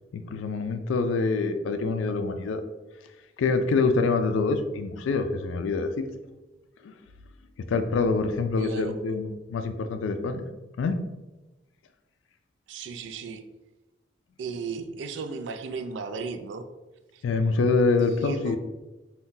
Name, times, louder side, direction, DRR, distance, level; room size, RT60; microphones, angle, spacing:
voice 1, 0.1-2.6 2.9-6.1 6.8-10.5 10.8-11.0 17.2-18.6, left 3 dB, 90° left, 8 dB, 0.3 m, -26 dB
voice 2, 8.6-8.9 12.7-13.4 14.4-16.7 17.1-17.2 18.0-18.6, right 4 dB, 70° right, 8 dB, 0.3 m, -35 dB
2.7 x 2.2 x 3.7 m, 1.1 s
head